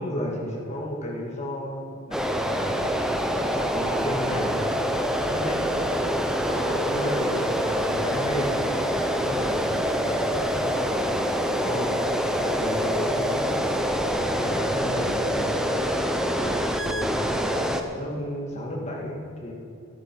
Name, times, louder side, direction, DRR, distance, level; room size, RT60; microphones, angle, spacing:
voice 1, 0.0-2.9 3.5-4.6 5.2-5.6 6.1-8.6 9.1-12.0 12.4-13.8 14.3-15.8 16.4-17.7 17.9-19.5, equal, 30° left, -2 dB, 2.1 m, -33 dB
sound 1, 2.1-17.8, equal, 5° right, 0.6 m, -25 dB
13.0 x 9.3 x 6.2 m, 2.6 s
head